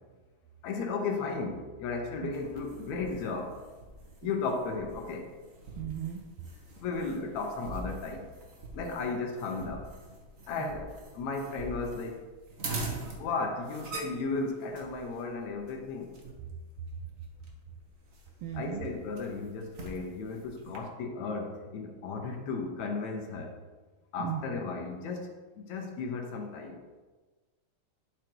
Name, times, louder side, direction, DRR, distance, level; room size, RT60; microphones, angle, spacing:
voice 1, 0.6-3.6 4.2-5.3 6.8-8.3 8.7-9.9 10.5-12.2 13.2-16.1 18.5-23.6 24.1-26.8, left 4 dB, 75° left, 3 dB, 2.3 m, -35 dB
sound 1, 2.3-20.8, right 2 dB, 50° right, 0.9 m, -44 dB
voice 2, 5.8-6.2 9.1-9.2 10.6-10.7 18.4-18.9 24.2-24.4, right 10 dB, 85° right, 5 dB, 1.3 m, -36 dB
11.0 x 5.0 x 4.6 m, 1.3 s
omnidirectional pair, 3.4 m